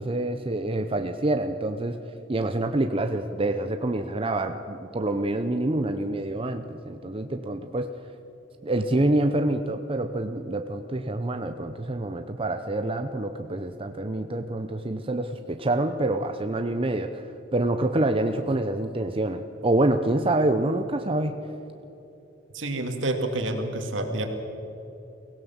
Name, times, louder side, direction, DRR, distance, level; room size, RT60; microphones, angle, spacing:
voice 1, 0.0-2.0 2.3-7.9 8.6-21.4, right 2 dB, 30° right, 7 dB, 0.8 m, -26 dB
voice 2, 22.5-24.3, right 2 dB, 75° right, 5 dB, 2.4 m, -28 dB
23.5 x 17.0 x 7.3 m, 3.0 s
head